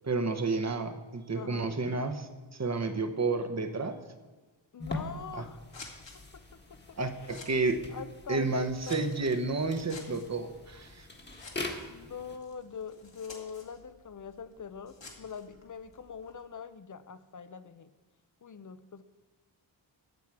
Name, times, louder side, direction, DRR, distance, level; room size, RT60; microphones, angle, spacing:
voice 1, 0.0-4.0 5.3-5.4 7.0-7.8 8.3-11.1, right 3 dB, 35° right, 8 dB, 1.0 m, -31 dB
voice 2, 1.3-1.8 4.7-5.6 6.5-7.3 7.9-9.1 11.9-17.9 18.4-19.0, left 6 dB, 40° left, 13 dB, 0.6 m, -43 dB
sound 1, 4.8-12.4, left 2 dB, 20° left, 1.4 m, -43 dB
Scissors, 5.3-16.4, left 3 dB, 70° left, 2.1 m, -53 dB
14.5 x 8.9 x 4.8 m, 1.2 s
wide cardioid pair, 130°, 46 cm